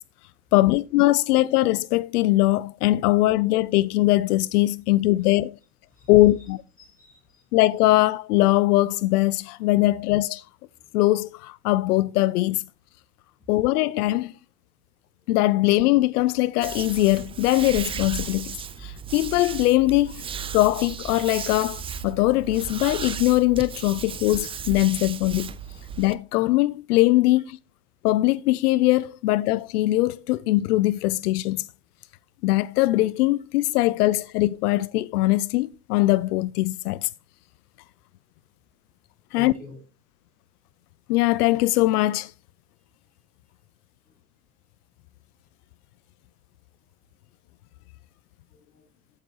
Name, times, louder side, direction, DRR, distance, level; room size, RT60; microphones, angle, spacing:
voice 1, 0.5-5.5 6.1-6.6 7.5-10.5 10.9-12.6 13.5-14.3 15.3-20.2 20.5-25.5 26.0-27.6 28.0-31.7 32.4-37.1 39.3-39.5 41.1-42.3, left 17 dB, 85° left, 0.5 m, -21 dB
voice 2, 6.8-7.5 10.8-10.9 25.9-26.0 39.3-39.8 44.1-44.2 48.5-48.9, left 4 dB, 20° left, 7.0 m, -45 dB
sound 1, 16.6-26.1, right 7 dB, 15° right, 0.4 m, -35 dB
13.5 x 8.2 x 2.9 m
supercardioid pair, 120°, 45 cm